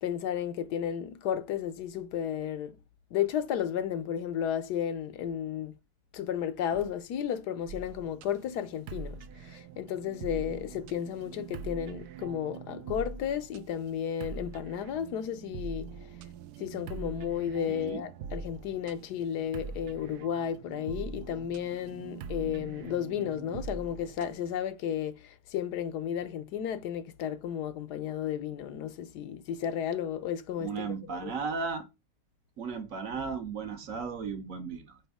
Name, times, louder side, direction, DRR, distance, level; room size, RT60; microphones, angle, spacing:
voice 1, 0.0-2.7 3.1-5.7 6.1-15.9 16.6-30.9 31.2-31.3, left 9 dB, 80° left, 1.2 m, -33 dB
sound 1, 7.7-24.5, right 5 dB, 75° right, 1.0 m, -43 dB
voice 2, 17.7-18.0 21.8-21.9 30.6-31.9 32.6-35.0, right 5 dB, 60° right, 1.2 m, -35 dB
6.1 x 4.6 x 3.5 m
omnidirectional pair, 1.8 m